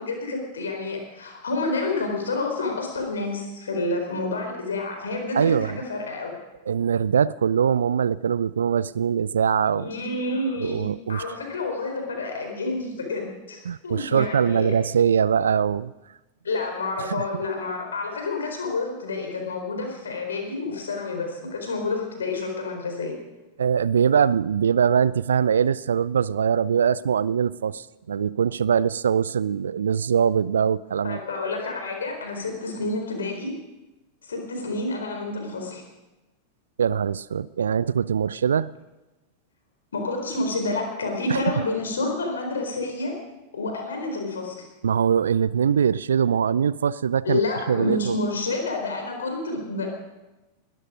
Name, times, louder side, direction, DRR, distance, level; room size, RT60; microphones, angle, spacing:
voice 1, 0.0-6.3 9.7-14.8 16.4-23.1 31.0-33.6 34.2-35.8 39.9-43.2 43.5-44.6 47.2-49.9, left 3 dB, 70° left, 3 dB, 4.3 m, -29 dB
voice 2, 5.3-5.8 6.7-9.9 10.6-11.2 13.7-15.9 17.0-17.2 23.6-31.2 36.8-38.7 41.3-41.5 44.8-47.4 47.7-48.2, right 7 dB, 70° right, 20 dB, 0.5 m, -22 dB
21.0 x 13.0 x 5.1 m, 1.1 s
figure-of-eight pair, 90°, 0 cm